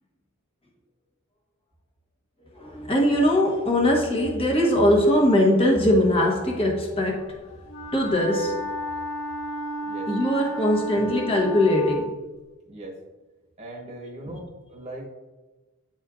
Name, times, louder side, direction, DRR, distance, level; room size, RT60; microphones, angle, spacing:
voice 1, 2.5-8.9 10.1-12.1, left 1 dB, 25° left, -1 dB, 1.1 m, -21 dB
Wind instrument woodwind instrument, 7.7-12.1, equal, 65° left, 1.2 m, -33 dB
voice 2, 10.5-11.2 12.6-13.0 13.6-15.1, right 1 dB, 30° right, -1 dB, 1.1 m, -39 dB
9.0 x 4.3 x 2.4 m, 1.2 s
head